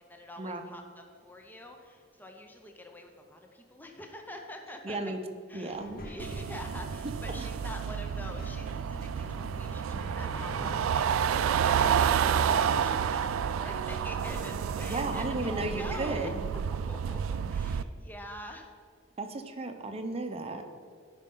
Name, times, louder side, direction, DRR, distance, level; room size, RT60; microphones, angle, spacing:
voice 1, 0.0-5.1 5.5-16.3 16.7-18.7, left 1 dB, 10° left, 3 dB, 0.5 m, -46 dB
voice 2, 4.8-5.2 5.5-6.0 7.4-7.5 14.8-16.3 19.2-20.7, right 2 dB, 30° right, 5 dB, 0.6 m, -34 dB
Child speech kid speaking, 5.7-16.5, left 1 dB, 50° left, 0.9 m, -45 dB
sound 1, 6.2-17.8, right 8 dB, 90° right, 0.3 m, -30 dB
11.0 x 5.2 x 3.8 m, 2.1 s
head